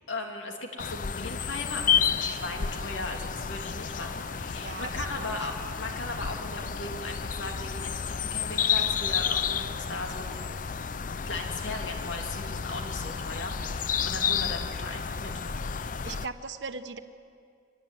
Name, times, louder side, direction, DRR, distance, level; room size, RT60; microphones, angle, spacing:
voice 1, 0.1-10.5 11.2-15.3, left 2 dB, 75° left, 2 dB, 3.1 m, -38 dB
sound 1, 0.8-16.3, left 7 dB, 45° left, 0.5 m, -31 dB
voice 2, 4.5-5.5 16.0-17.0, right 4 dB, 65° right, 10 dB, 1.1 m, -39 dB
24.0 x 19.0 x 9.4 m, 2.3 s
head